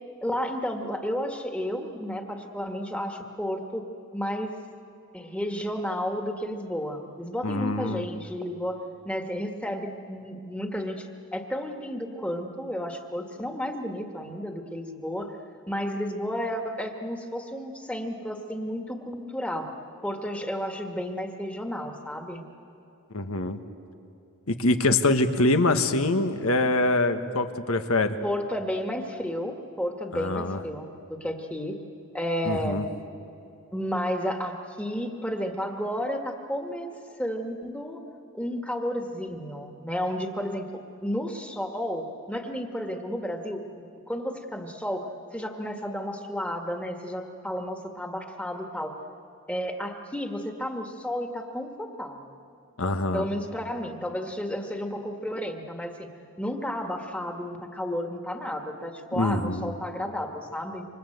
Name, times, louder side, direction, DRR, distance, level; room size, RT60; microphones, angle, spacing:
voice 1, 0.2-3.9 4.1-4.6 5.1-8.8 9.1-15.4 15.7-19.7 20.0-22.4 28.2-31.8 32.1-32.8 33.7-38.0 38.3-48.9 49.5-52.3 53.1-56.1 56.4-60.9, equal, 5° left, 4 dB, 1.8 m, -32 dB
voice 2, 7.4-8.0 23.1-23.6 24.5-28.1 30.1-30.6 32.5-32.8 52.8-53.3 59.1-59.7, left 2 dB, 80° left, 8 dB, 1.6 m, -24 dB
28.0 x 26.0 x 8.1 m, 2.9 s
head